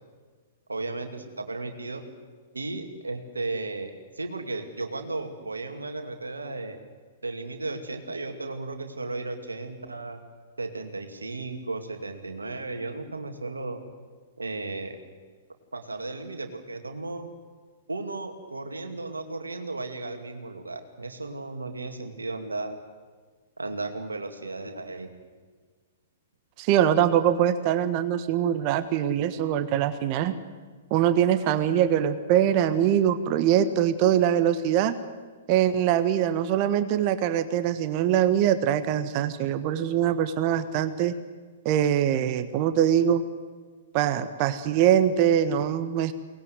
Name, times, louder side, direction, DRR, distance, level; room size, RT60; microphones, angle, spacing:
voice 1, 0.7-2.0 2.5-3.9 4.2-6.8 7.2-10.2 10.6-13.8 14.4-15.0 15.7-17.3 17.9-22.8 23.6-25.1, right 3 dB, 85° right, 5 dB, 2.4 m, -35 dB
voice 2, 26.6-30.3 30.9-34.9 35.5-41.1 41.6-43.2 43.9-46.1, right 10 dB, 40° right, 11 dB, 1.4 m, -23 dB
23.0 x 19.5 x 9.6 m, 1.5 s
figure-of-eight pair, 110°, 0 cm